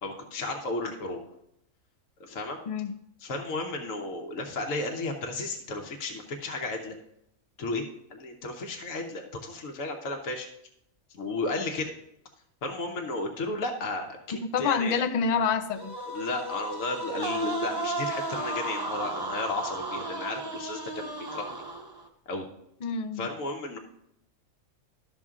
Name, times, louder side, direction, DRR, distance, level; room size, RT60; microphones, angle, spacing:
voice 1, 0.0-1.2 2.2-2.6 3.2-7.0 7.6-7.8 8.1-10.5 11.1-11.9 12.6-15.0 16.1-21.6 22.3-22.4 23.2-23.8, left 2 dB, 75° left, 2 dB, 1.3 m, -33 dB
voice 2, 14.3-16.0 22.8-23.3, left 6 dB, 55° left, 9 dB, 0.4 m, -27 dB
sound 1, 15.7-22.1, right 2 dB, 20° right, 0.7 m, -34 dB
12.0 x 6.1 x 3.7 m, 0.78 s
omnidirectional pair, 1.4 m